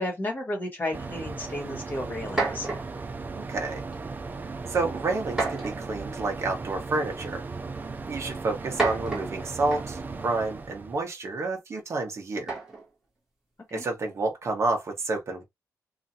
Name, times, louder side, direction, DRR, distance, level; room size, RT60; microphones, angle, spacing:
voice 1, 0.0-2.7 13.7-13.8, left 1 dB, 30° left, 1.6 m, -33 dB
sound 1, 0.9-11.0, right 4 dB, 30° right, 0.4 m, -37 dB
sound 2, 1.6-1.7 2.2-3.0 3.9-4.2 5.3-6.0 7.1-7.2 8.5-10.1 12.4-12.9, right 3 dB, 10° right, 1.6 m, -31 dB
voice 2, 3.3-3.8 4.7-7.4 8.0-12.5 13.7-15.4, right 3 dB, 45° right, 1.2 m, -29 dB
3.0 x 2.7 x 2.7 m
wide cardioid pair, 150°, 7 cm